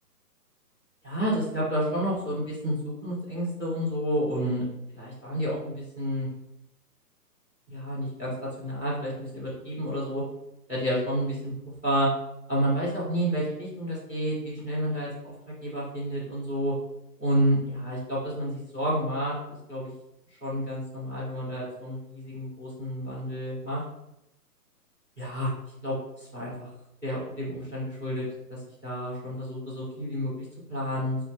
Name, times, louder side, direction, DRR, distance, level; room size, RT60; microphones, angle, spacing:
voice 1, 1.0-4.6 4.9-6.3 7.7-10.2 10.7-11.5 11.8-12.1 12.5-15.3 15.6-16.7 17.2-19.4 19.7-19.9 20.4-23.8 25.2-25.5 25.8-26.7 27.0-28.2 28.5-31.2, equal, ahead, -14 dB, 0.7 m, -30 dB
4.6 x 2.1 x 3.1 m, 0.85 s
hypercardioid pair, 175°, 48 cm